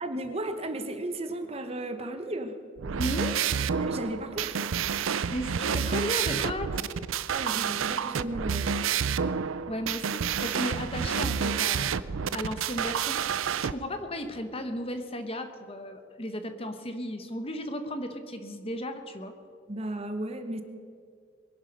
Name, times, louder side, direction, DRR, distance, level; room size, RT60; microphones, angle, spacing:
voice 1, 0.0-2.5 3.8-4.7 7.3-8.7 19.7-20.6, right 1 dB, 30° right, 7 dB, 1.1 m, -34 dB
sound 1, 2.8-13.7, right 7 dB, 90° right, 0.5 m, -29 dB
voice 2, 3.0-3.4 5.3-6.8 9.7-12.0 12.3-19.3, left 1 dB, 30° left, 8 dB, 1.1 m, -35 dB
22.5 x 11.0 x 5.4 m, 2.4 s
head